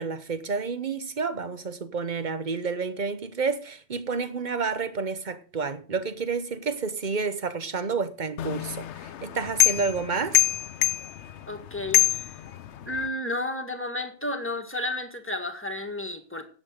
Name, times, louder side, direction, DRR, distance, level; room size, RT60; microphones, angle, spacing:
voice 1, 0.0-10.4, right 5 dB, 45° right, 1.1 m, -30 dB
sound 1, 8.4-13.1, left 14 dB, 85° left, 1.0 m, -26 dB
voice 2, 11.5-12.4 12.8-16.5, left 2 dB, 10° left, 1.7 m, -32 dB
9.6 x 7.8 x 6.5 m
omnidirectional pair, 1.1 m